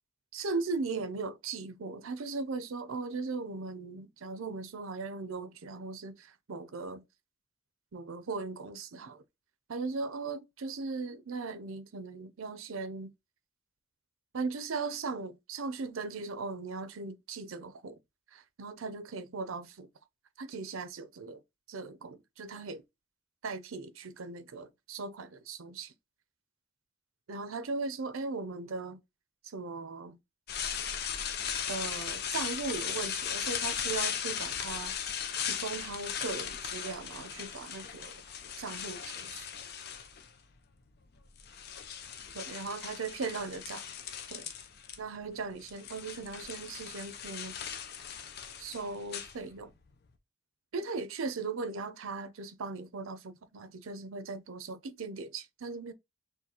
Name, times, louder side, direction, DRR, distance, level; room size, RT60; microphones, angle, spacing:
voice 1, 0.3-7.0 7.9-9.2 9.7-13.1 14.3-18.0 18.3-19.9 20.4-21.4 21.7-22.8 23.4-25.9 27.3-29.0 29.4-30.2 31.7-35.0 35.4-38.2 38.6-39.5 42.3-43.8 44.3-44.4 45.0-47.6 48.6-49.7 50.7-55.9, right 4 dB, 85° right, 0.6 m, -38 dB
sound 1, 30.5-40.4 41.2-45.0 45.2-49.8, left 8 dB, 50° left, 0.5 m, -38 dB
6.4 x 2.3 x 2.9 m
head